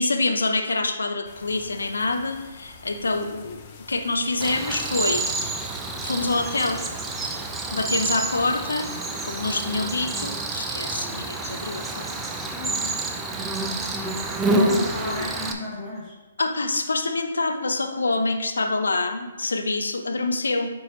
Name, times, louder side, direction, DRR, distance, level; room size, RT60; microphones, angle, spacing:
voice 1, 0.0-5.2 6.0-6.8 7.7-8.9 9.2-12.0 14.5-15.3 16.4-20.7, left 3 dB, 85° left, 5 dB, 0.7 m, -26 dB
sound 1, 1.2-9.8, left 4 dB, 35° left, 0.8 m, -47 dB
Cricket, 4.4-15.5, right 3 dB, 10° right, 0.5 m, -29 dB
voice 2, 12.5-13.0 14.5-16.1, left 2 dB, 15° left, -9 dB, 1.6 m, -34 dB
8.0 x 4.7 x 3.1 m, 1.2 s
hypercardioid pair, 145°, 0 cm